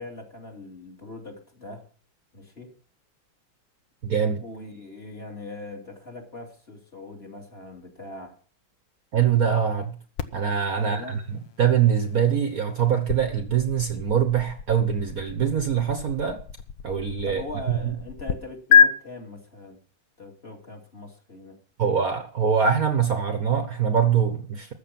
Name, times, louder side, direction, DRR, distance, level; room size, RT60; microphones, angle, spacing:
voice 1, 0.0-1.8 2.3-2.7 4.4-8.3 10.8-11.2 17.2-19.8 20.2-21.6, left 2 dB, 30° left, 1 dB, 2.8 m, -40 dB
voice 2, 4.0-4.4 9.1-9.9 10.3-16.4 16.8-17.9 21.8-24.7, right 8 dB, 50° right, 7 dB, 1.4 m, -23 dB
sound 1, 10.2-18.3 18.7-18.9, left 7 dB, 70° left, 1.5 m, -27 dB
14.0 x 8.5 x 5.9 m, 0.41 s
omnidirectional pair, 2.2 m